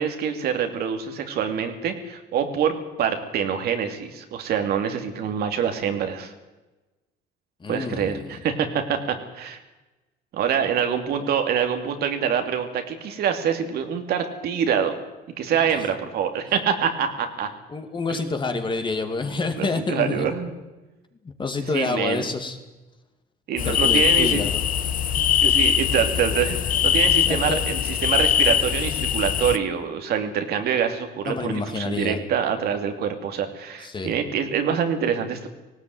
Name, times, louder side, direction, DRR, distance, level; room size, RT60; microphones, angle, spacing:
voice 1, 0.0-6.3 7.7-9.6 10.3-15.0 15.4-17.5 18.1-18.3 19.6-20.5 21.7-22.3 23.5-24.4 25.4-35.5, right 7 dB, 70° right, 6 dB, 2.6 m, -25 dB
voice 2, 7.6-8.4 15.5-15.8 17.7-20.3 21.2-22.6 23.6-24.6 25.4-25.7 27.2-27.6 31.2-32.2 33.8-34.1, left 3 dB, 30° left, 6 dB, 2.5 m, -28 dB
sound 1, 23.6-29.6, left 9 dB, 55° left, 1.0 m, -22 dB
18.5 x 17.0 x 9.5 m, 1.1 s
cardioid pair, 110°, 17 cm